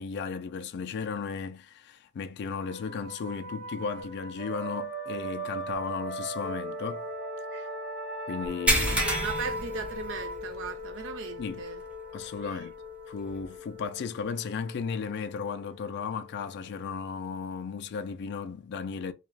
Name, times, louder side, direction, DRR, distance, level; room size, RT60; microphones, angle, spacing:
voice 1, 0.0-7.1 7.6-7.7 8.3-9.1 11.4-11.6 12.1-12.7 13.1-19.1, left 5 dB, 50° left, 0.3 m, -35 dB
sound 1, 2.5-17.8, equal, 45° right, 0.9 m, -39 dB
sound 2, 8.7-10.6 10.9-11.1 11.6-11.7 13.3-13.4, equal, 5° right, 0.6 m, -28 dB
voice 2, 8.8-11.8 12.4-12.7, right 5 dB, 60° right, 0.4 m, -38 dB
2.3 x 2.3 x 3.1 m
head